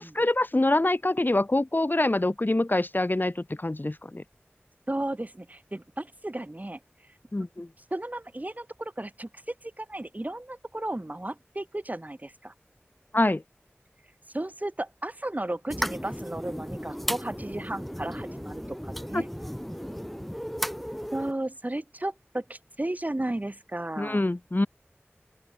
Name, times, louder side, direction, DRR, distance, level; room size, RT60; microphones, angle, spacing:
voice 1, 0.0-4.2 7.3-7.7 13.1-13.4 19.1-19.2 24.0-24.7, left 2 dB, 45° left, 3.0 m, -25 dB
voice 2, 4.9-6.8 7.9-12.5 14.3-19.3 21.1-24.2, right 1 dB, 35° right, 2.5 m, -34 dB
sound 1, 15.7-21.3, equal, 5° left, 2.3 m, -35 dB
open air
wide cardioid pair, 45°, 4 cm